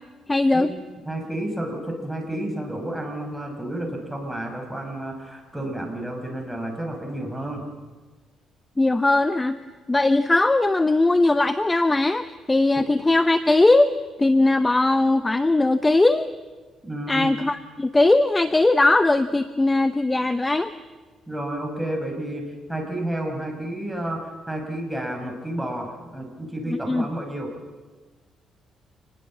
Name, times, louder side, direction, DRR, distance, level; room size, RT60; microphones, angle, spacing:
voice 1, 0.3-0.7 8.8-9.6 9.9-13.9 14.2-16.3 17.1-20.7 26.7-27.0, left 2 dB, 15° left, 12 dB, 0.8 m, -19 dB
voice 2, 1.1-7.6 16.8-17.3 21.3-22.4 22.7-27.5, right 1 dB, 5° right, 2 dB, 5.4 m, -31 dB
27.0 x 20.0 x 7.4 m, 1.3 s
cardioid pair, 110°, 0 cm